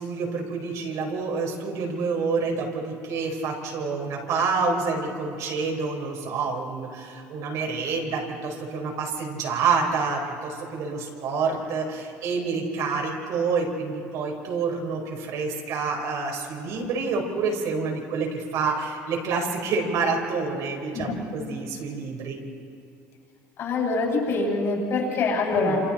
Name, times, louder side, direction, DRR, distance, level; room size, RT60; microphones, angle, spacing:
voice 1, 0.0-22.4 25.5-25.8, right 4 dB, 65° right, 0 dB, 4.8 m, -28 dB
voice 2, 23.6-25.8, left 3 dB, 50° left, -2 dB, 6.6 m, -25 dB
28.5 x 27.5 x 4.4 m, 2.4 s
cardioid pair, 135°, 6 cm